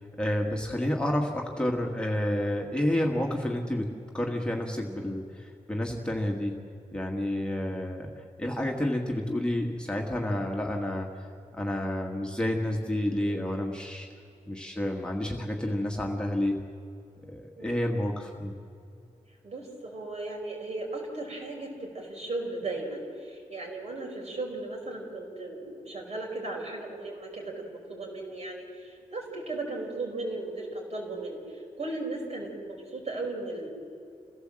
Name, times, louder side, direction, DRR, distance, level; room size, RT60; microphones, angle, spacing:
voice 1, 0.0-6.6 6.9-8.1 8.4-11.1 11.5-14.1 14.5-16.6 17.3-18.5, left 1 dB, 5° left, 0 dB, 1.7 m, -30 dB
voice 2, 19.4-33.7, right 2 dB, 55° right, -1 dB, 5.3 m, -36 dB
27.5 x 16.5 x 7.7 m, 2.5 s
wide cardioid pair, 170°, 13 cm